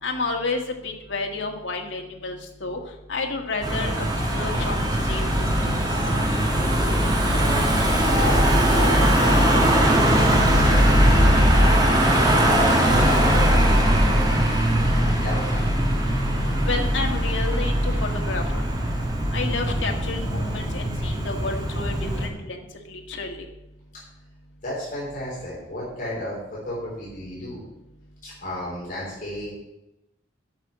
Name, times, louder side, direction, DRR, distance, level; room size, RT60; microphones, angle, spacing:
voice 1, 0.0-2.8 3.1-4.0 4.3-5.7 16.6-18.6 19.3-23.4, left 3 dB, 75° left, 3 dB, 1.6 m, -30 dB
Car passing by / Engine, 3.6-22.3, equal, 20° right, 1.8 m, -20 dB
voice 2, 6.5-7.7 8.1-14.3 14.8-15.7 24.6-27.6 28.2-29.6, left 1 dB, 45° left, -6 dB, 3.5 m, -34 dB
8.8 x 6.2 x 7.5 m, 0.93 s
head